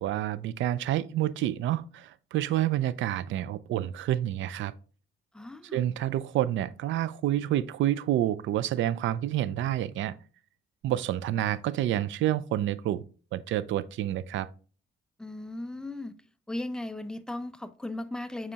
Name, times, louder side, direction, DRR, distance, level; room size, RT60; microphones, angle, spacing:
voice 1, 0.0-4.7 5.7-10.2 10.8-13.0 13.3-14.5, right 12 dB, 75° right, 0.5 m, -28 dB
voice 2, 5.3-5.8 15.2-16.1 16.5-18.5, left 1 dB, 5° left, 0.5 m, -36 dB
7.5 x 4.8 x 2.9 m
cardioid pair, 90°, 20 cm